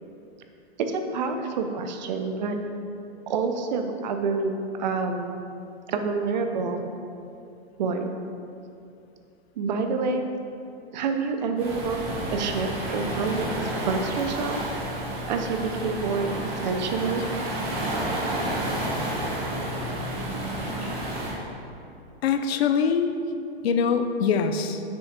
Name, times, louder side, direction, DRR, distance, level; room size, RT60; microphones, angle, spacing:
voice 1, 0.8-2.6 3.3-4.5 4.8-5.3 5.9-6.8 7.8-8.1 9.6-10.2 10.9-12.0 12.3-13.5 13.8-14.6 15.3-17.2, right 4 dB, 45° right, 5 dB, 0.6 m, -27 dB
Waves surf, 11.6-21.3, right 1 dB, 20° right, 1.0 m, -30 dB
voice 2, 22.2-23.1 23.6-24.8, left 6 dB, 80° left, 8 dB, 0.7 m, -23 dB
6.4 x 5.3 x 5.1 m, 2.6 s
supercardioid pair, 170°, 31 cm